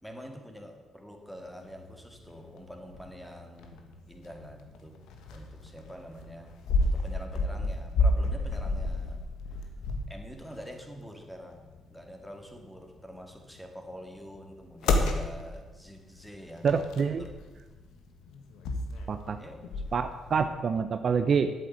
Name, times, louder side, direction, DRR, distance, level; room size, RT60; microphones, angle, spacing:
voice 1, 0.0-5.0 5.3-6.5 6.8-9.2 9.5-9.7 10.1-11.6 11.9-16.7 17.2-17.3 19.4-19.6, equal, ahead, 3 dB, 2.2 m, -46 dB
sound 1, 1.3-20.5, left 2 dB, 85° left, 1.5 m, -33 dB
voice 2, 16.6-17.3 19.1-19.4 19.9-21.5, right 6 dB, 50° right, 9 dB, 0.7 m, -27 dB
9.1 x 8.2 x 8.2 m, 1.3 s
cardioid pair, 90°, 0 cm